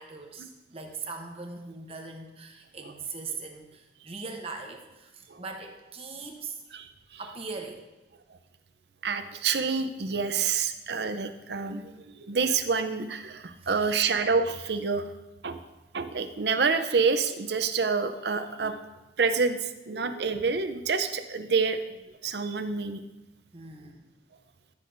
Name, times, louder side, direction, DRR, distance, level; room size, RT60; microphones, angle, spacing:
voice 1, 0.0-6.6 7.2-7.9 13.6-14.1 23.5-24.1, right 4 dB, 35° right, 2 dB, 0.9 m, -40 dB
voice 2, 9.0-11.9 12.3-15.0 15.4-15.6 15.9-18.8 19.2-19.6 19.9-21.8 22.2-23.0, right 5 dB, 70° right, 9 dB, 0.6 m, -27 dB
13.5 x 6.8 x 2.6 m, 1.0 s
head